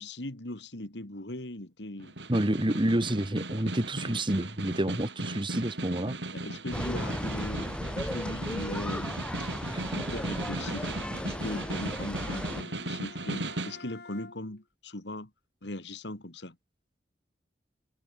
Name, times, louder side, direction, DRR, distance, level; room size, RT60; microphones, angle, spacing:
voice 1, 0.0-2.1 6.3-9.1 9.9-15.3 15.6-16.6, left 1 dB, 85° left, 2.8 m, -39 dB
Snare drum, 2.0-13.8, right 2 dB, 90° right, 5.3 m, -37 dB
voice 2, 2.3-6.2 9.7-9.8, right 1 dB, 30° right, 1.7 m, -28 dB
sound 1, 6.7-12.6, equal, 5° left, 1.0 m, -36 dB
Bowed string instrument, 10.3-14.6, left 2 dB, 65° left, 3.5 m, -50 dB
head